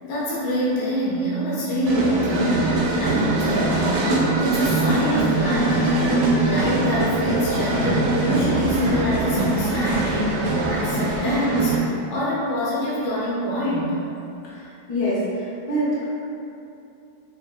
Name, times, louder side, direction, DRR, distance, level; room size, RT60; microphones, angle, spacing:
voice 1, 0.0-14.0, equal, 80° left, -8 dB, 1.7 m, -26 dB
sound 1, 1.9-11.8, right 2 dB, 75° right, 1.0 m, -22 dB
voice 2, 14.4-16.0, equal, 55° left, -9 dB, 0.6 m, -26 dB
5.1 x 2.6 x 2.3 m, 2.7 s
omnidirectional pair, 2.2 m